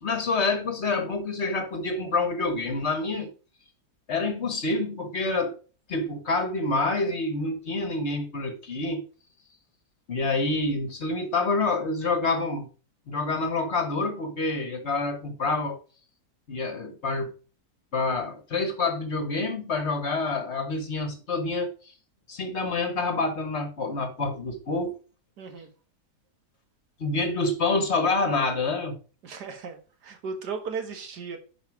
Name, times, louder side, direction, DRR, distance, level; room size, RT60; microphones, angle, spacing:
voice 1, 0.0-3.3 4.1-5.5 5.9-9.0 10.1-12.7 13.1-15.8 16.5-17.3 17.9-21.7 22.3-24.9 27.0-29.0, left 3 dB, 45° left, 1.2 m, -27 dB
voice 2, 25.4-25.7 29.2-31.4, right 5 dB, 80° right, 1.9 m, -36 dB
10.0 x 4.8 x 4.7 m
omnidirectional pair, 1.7 m